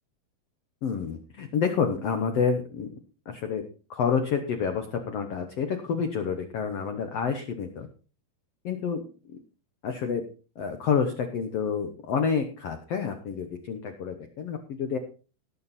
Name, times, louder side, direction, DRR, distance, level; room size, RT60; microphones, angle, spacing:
voice 1, 0.8-2.9 3.3-3.6 3.9-7.9 8.6-9.0 9.8-10.2 10.6-15.0, left 6 dB, 75° left, 7 dB, 1.4 m, -28 dB
18.5 x 7.1 x 4.1 m, 0.36 s
omnidirectional pair, 4.3 m